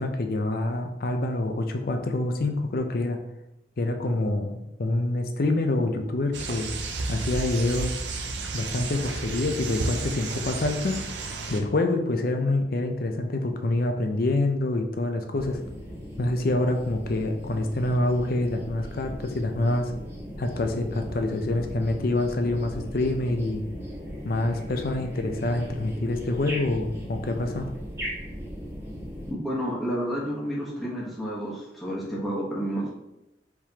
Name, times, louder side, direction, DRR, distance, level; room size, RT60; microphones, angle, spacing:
voice 1, 0.0-3.2 3.8-6.7 7.1-7.9 8.5-15.6 16.2-19.9 20.4-23.6 24.2-27.7, left 2 dB, 55° left, 5 dB, 0.5 m, -26 dB
sound 1, 6.3-11.6, right 3 dB, 70° right, 0.6 m, -32 dB
Purple Martin at San Carlos, 15.3-29.3, equal, 15° right, 1.5 m, -38 dB
voice 2, 29.3-32.9, equal, ahead, -7 dB, 1.2 m, -30 dB
4.7 x 3.6 x 2.9 m, 0.92 s
head